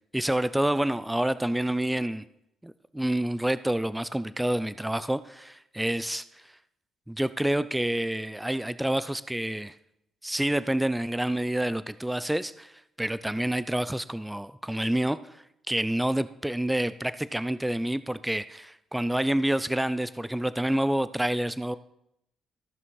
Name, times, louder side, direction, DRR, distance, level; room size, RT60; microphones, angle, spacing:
voice 1, 0.1-2.2 2.6-6.5 7.1-9.7 10.2-21.8, right 1 dB, 5° right, 15 dB, 0.4 m, -28 dB
14.5 x 6.1 x 4.7 m, 0.80 s
cardioid pair, 90°, 0 cm